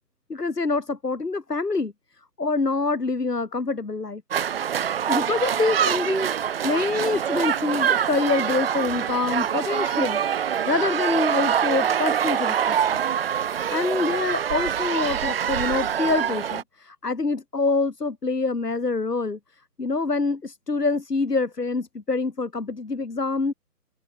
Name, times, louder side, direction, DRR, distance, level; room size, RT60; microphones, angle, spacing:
voice 1, 0.3-1.9 2.4-4.2 5.1-13.0 13.7-19.4 19.8-23.5, left 3 dB, 80° left, 5.3 m, -26 dB
sound 1, 4.3-16.6, right 9 dB, 35° right, 2.6 m, -25 dB
open air
figure-of-eight pair, 150°, 47 cm